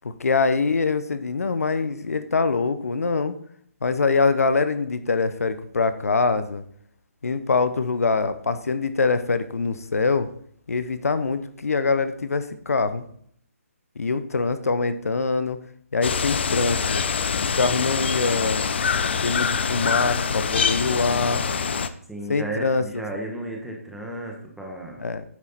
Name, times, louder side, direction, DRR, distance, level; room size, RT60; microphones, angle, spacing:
voice 1, 0.0-3.4 3.8-6.6 7.2-10.3 10.7-13.0 14.0-15.6 15.9-17.0 17.4-18.7 19.2-21.5 22.3-23.0 25.0-25.2, left 4 dB, 80° left, 12 dB, 1.0 m, -24 dB
sound 1, 16.0-21.9, left 6 dB, 45° left, 0.6 m, -25 dB
voice 2, 22.1-25.0, right 1 dB, ahead, -1 dB, 1.1 m, -34 dB
9.5 x 7.3 x 4.2 m, 0.62 s
hypercardioid pair, 165°, 8 cm